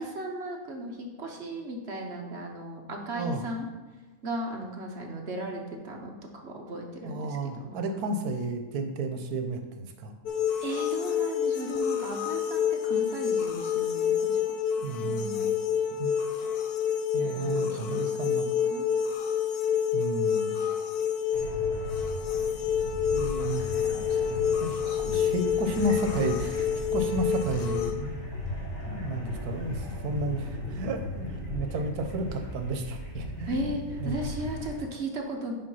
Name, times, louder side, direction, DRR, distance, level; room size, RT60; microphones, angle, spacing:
voice 1, 0.0-3.7 4.2-8.1 10.6-14.4 15.0-15.5 17.2-18.4 18.6-18.9 23.6-25.9 33.5-35.5, right 1 dB, 50° right, 2 dB, 1.0 m, -37 dB
voice 2, 3.1-3.4 7.0-10.1 14.8-15.5 16.0-16.1 17.1-18.5 19.9-20.6 23.1-23.6 24.6-24.8 25.1-28.2 28.9-33.7 34.0-34.2, right 2 dB, 85° right, 6 dB, 1.2 m, -32 dB
sound 1, 10.3-27.9, left 8 dB, 90° left, 1.2 m, -28 dB
sound 2, 21.3-34.8, left 1 dB, 60° left, 1.7 m, -37 dB
5.6 x 4.9 x 5.5 m, 1.3 s
omnidirectional pair, 1.6 m